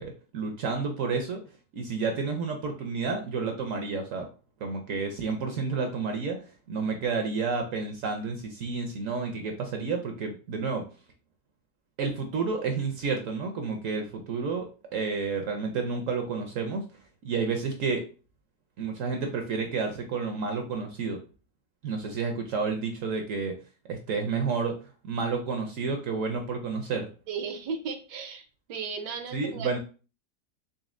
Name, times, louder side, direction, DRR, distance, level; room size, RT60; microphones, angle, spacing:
voice 1, 0.0-1.4 1.7-4.3 4.6-10.9 12.0-16.8 17.2-18.0 18.8-21.2 21.8-23.5 23.9-27.1 29.3-29.8, right 4 dB, 65° right, 4 dB, 0.8 m, -30 dB
voice 2, 27.3-28.4 28.7-29.8, right 5 dB, 85° right, 6 dB, 1.4 m, -35 dB
4.1 x 3.3 x 2.4 m, 0.36 s
omnidirectional pair, 1.8 m